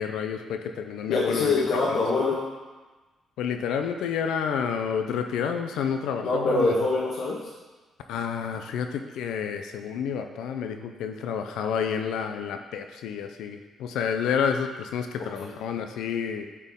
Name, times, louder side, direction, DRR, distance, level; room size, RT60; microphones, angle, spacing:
voice 1, 0.0-1.5 1.9-2.0 3.4-6.7 8.1-16.4, left 7 dB, 85° left, 6 dB, 0.5 m, -29 dB
voice 2, 1.1-2.5 6.2-7.4 15.4-15.5, left 3 dB, 70° left, -6 dB, 1.3 m, -24 dB
9.0 x 4.4 x 3.6 m, 1.2 s
cardioid pair, 90°, 0 cm